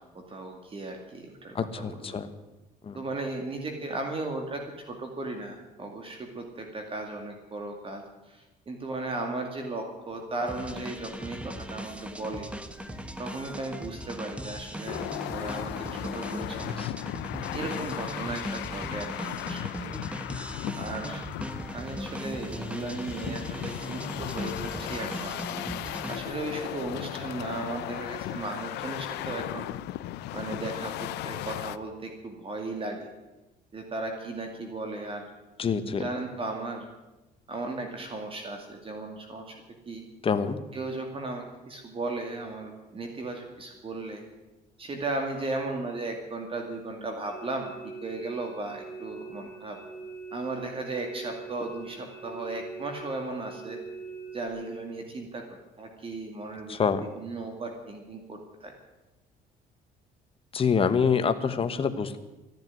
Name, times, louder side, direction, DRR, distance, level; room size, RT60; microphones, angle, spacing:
voice 1, 0.0-2.2 2.9-12.5 13.2-16.8 17.5-19.9 20.7-21.3 21.7-25.4 26.1-29.7 30.3-33.1 33.7-35.3 35.9-36.9 37.5-39.6 39.9-40.0 40.7-44.3 44.8-47.7 48.0-49.8 50.3-53.8 54.3-55.4 55.8-58.7, right 2 dB, 30° right, 3 dB, 2.3 m, -36 dB
voice 2, 1.5-2.3 2.8-3.0 16.8-16.9 35.6-36.0 40.2-40.6 56.7-57.0 60.5-62.2, left 6 dB, 35° left, 9 dB, 1.2 m, -26 dB
sound 1, 10.5-26.6, equal, 5° right, 1.3 m, -38 dB
sound 2, 14.9-31.8, left 15 dB, 85° left, 0.7 m, -37 dB
sound 3, 47.3-54.5, right 4 dB, 10° left, 5.3 m, -43 dB
14.0 x 10.5 x 9.5 m, 1.1 s
cardioid pair, 110°, 17 cm